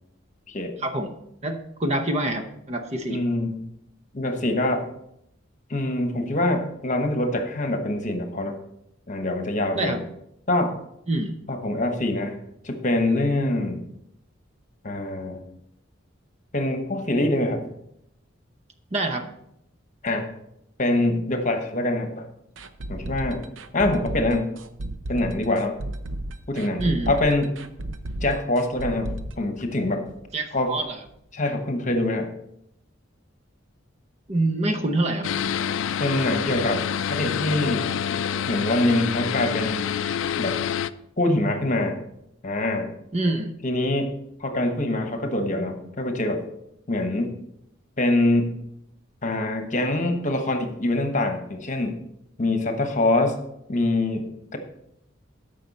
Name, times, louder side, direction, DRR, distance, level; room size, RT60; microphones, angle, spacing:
voice 1, 0.8-1.1 1.4-3.2 9.7-10.0 11.1-11.4 18.9-19.3 26.8-27.1 30.3-31.0 34.3-35.3 43.1-43.5, right 1 dB, 35° right, 6 dB, 0.7 m, -26 dB
voice 2, 3.1-3.6 4.1-4.9 5.7-8.6 9.1-10.0 10.5-10.8 11.5-12.4 12.6-13.8 14.8-15.4 16.5-17.6 20.0-20.3 20.8-22.3 22.9-23.5 23.7-24.6 25.1-25.8 26.5-27.5 28.2-30.0 30.5-30.7 31.3-32.3 36.0-37.9 38.5-39.9 40.4-40.6 41.2-42.0 42.4-42.9 43.6-44.1 44.4-46.4 46.9-47.4 48.0-48.6 49.2-52.0 52.4-53.4 53.7-54.6, left 1 dB, 40° left, 6 dB, 1.1 m, -24 dB
sound 1, 22.6-30.3 30.6-30.7 31.1-31.2, right 1 dB, 75° right, 0.7 m, -33 dB
sound 2, 35.2-40.9, left 8 dB, 75° left, 0.4 m, -27 dB
13.5 x 5.4 x 4.1 m, 0.77 s
head